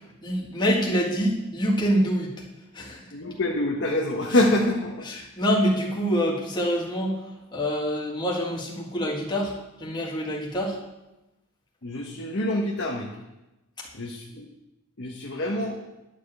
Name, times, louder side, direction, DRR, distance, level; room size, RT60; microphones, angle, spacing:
voice 1, 0.0-2.3 2.7-3.1 5.1-9.5 9.8-10.8 13.8-13.9, equal, 20° left, -2 dB, 1.7 m, -26 dB
voice 2, 3.1-5.1 11.8-13.1 13.9-14.5 15.0-15.8, left 1 dB, 55° left, -1 dB, 1.1 m, -26 dB
11.0 x 5.0 x 7.7 m, 1.0 s
head